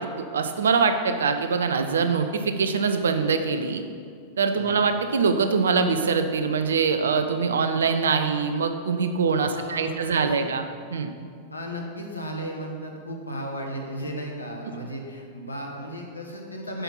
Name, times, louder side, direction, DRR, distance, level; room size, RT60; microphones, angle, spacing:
voice 1, 0.0-3.8 4.4-10.6 10.9-11.1 14.7-14.8, right 5 dB, 65° right, 8 dB, 0.7 m, -23 dB
voice 2, 9.5-10.5 11.5-16.8, equal, 85° left, 1 dB, 1.3 m, -35 dB
9.0 x 6.1 x 5.6 m, 2.2 s
figure-of-eight pair, 90°, 0 cm